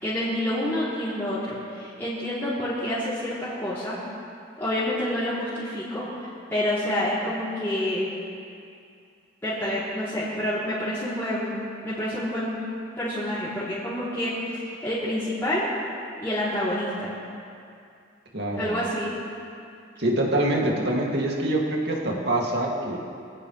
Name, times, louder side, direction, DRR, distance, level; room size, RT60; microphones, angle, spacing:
voice 1, 0.0-4.0 4.6-6.1 6.5-8.1 9.4-12.5 13.0-15.7 16.2-17.1 18.5-19.1, left 1 dB, 15° left, -12 dB, 3.2 m, -28 dB
voice 2, 18.3-18.8 20.0-23.0, right 1 dB, 60° right, -1 dB, 2.5 m, -25 dB
23.0 x 17.5 x 3.3 m, 2.5 s
head